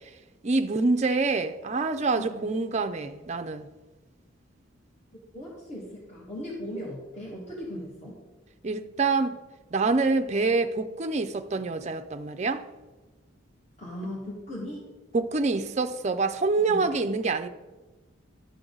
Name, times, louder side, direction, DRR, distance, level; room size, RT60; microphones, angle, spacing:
voice 1, 0.4-3.7 8.6-9.4 9.7-12.6 15.1-17.5, right 3 dB, 35° right, 0.5 m, -26 dB
voice 2, 2.2-2.5 5.3-8.2 13.8-14.9 16.6-16.9, equal, 30° left, 1.9 m, -38 dB
11.5 x 7.6 x 3.9 m
head